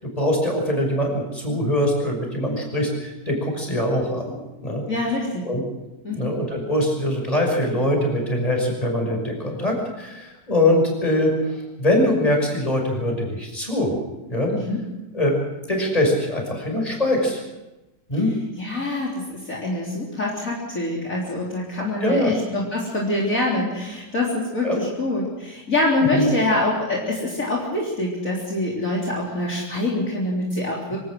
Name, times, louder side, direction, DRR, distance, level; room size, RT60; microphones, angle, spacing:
voice 1, 0.0-4.8 5.4-5.6 6.1-14.0 14.3-14.5 15.1-15.4 15.7-17.4 18.1-18.3 22.0-22.3 24.6-24.8 26.1-26.3, left 1 dB, 20° left, 1 dB, 6.2 m, -22 dB
voice 2, 4.9-5.4 6.0-6.4 14.5-14.8 18.6-31.0, left 2 dB, 50° left, -4 dB, 4.1 m, -25 dB
25.5 x 18.0 x 6.5 m, 1.0 s
omnidirectional pair, 1.9 m